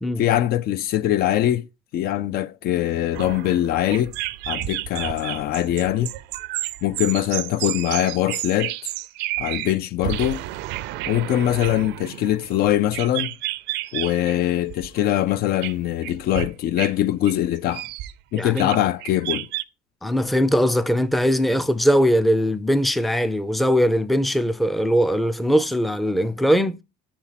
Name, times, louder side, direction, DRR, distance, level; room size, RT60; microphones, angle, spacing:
voice 1, 0.2-1.7 1.9-4.1 4.5-6.1 6.8-8.9 9.4-10.4 11.1-13.4 13.9-17.9 18.3-19.5, left 12 dB, 55° left, 0.4 m, -22 dB
sound 1, 3.1-9.8 10.0-14.3 14.7-15.0 15.6-16.5 16.8-17.0 17.3-19.6, right 16 dB, 75° right, 0.5 m, -31 dB
voice 2, 18.3-18.7 20.0-26.8, equal, ahead, 0.5 m, -20 dB
5.9 x 4.3 x 5.6 m
cardioid pair, 115°, 18 cm